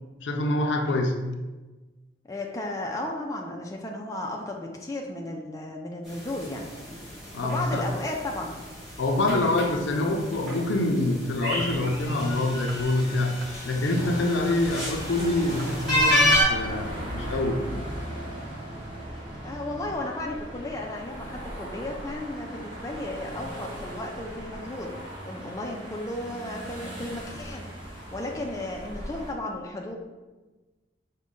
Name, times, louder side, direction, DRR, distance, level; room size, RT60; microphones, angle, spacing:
voice 1, 0.2-1.2 7.3-7.9 9.0-17.6, left 2 dB, 80° left, 4 dB, 0.5 m, -26 dB
voice 2, 2.2-6.7 7.4-8.5 19.4-24.9 25.3-29.9, left 1 dB, 15° left, 0 dB, 0.3 m, -34 dB
sound 1, 6.1-16.4, left 1 dB, 5° right, 1.3 m, -30 dB
sound 2, 11.6-12.1 12.7-14.0 14.5-15.0 15.5-15.8 16.3-16.5 17.2-17.3, right 2 dB, 60° right, 0.4 m, -42 dB
sound 3, 13.9-29.3, equal, 25° right, 1.0 m, -38 dB
5.0 x 2.2 x 3.6 m, 1.2 s
head